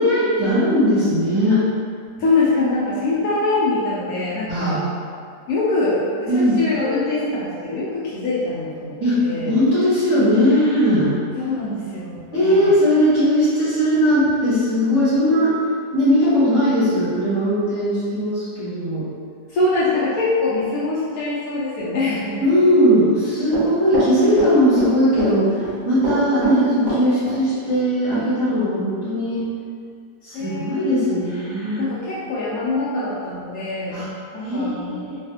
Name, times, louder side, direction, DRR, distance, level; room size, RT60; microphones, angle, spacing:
voice 1, 0.0-1.6 4.5-4.8 6.3-6.6 9.0-11.1 12.3-15.5 15.9-19.1 22.4-29.4 30.2-31.8 33.9-34.1 34.4-35.2, equal, 20° right, -14 dB, 0.7 m, -19 dB
voice 2, 2.2-4.8 5.5-9.0 9.2-9.6 11.4-12.7 19.5-22.4 24.2-24.5 30.3-31.1 31.8-34.0 34.3-35.1, left 2 dB, 70° left, -8 dB, 0.9 m, -23 dB
Run, 23.5-24.9 25.2-25.7 26.0-27.4 27.7-27.8 28.1-28.2, right 2 dB, 75° right, 1.5 m, -25 dB
3.3 x 2.3 x 2.7 m, 2.2 s
omnidirectional pair, 1.8 m